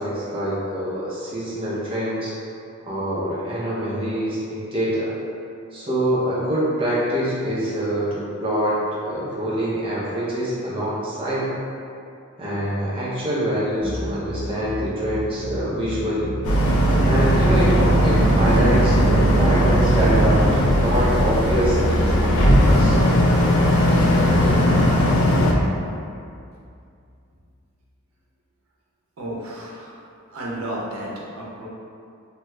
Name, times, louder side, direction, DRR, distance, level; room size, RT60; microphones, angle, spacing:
voice 1, 0.0-2.4 2.8-5.1 5.7-11.5 12.4-16.3 17.0-23.0, equal, 25° right, -7 dB, 0.5 m, -25 dB
sound 1, 13.8-27.1, left 1 dB, 25° left, 1.3 m, -33 dB
Boat Water vehicle, 16.4-25.5, equal, 80° left, 0.4 m, -17 dB
voice 2, 29.2-30.0 30.3-31.7, right 1 dB, 80° right, -4 dB, 0.6 m, -32 dB
2.7 x 2.2 x 3.1 m, 2.5 s
head